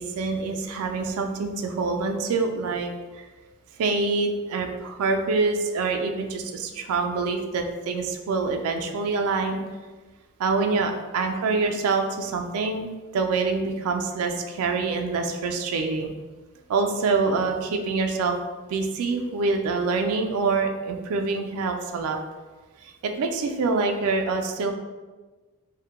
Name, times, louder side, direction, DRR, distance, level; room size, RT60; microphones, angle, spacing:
voice 1, 0.0-3.2 3.8-9.6 10.4-16.1 16.7-18.4 18.6-22.2 22.8-24.7, right 4 dB, 75° right, 4 dB, 0.3 m, -26 dB
2.1 x 2.1 x 2.9 m, 1.3 s
head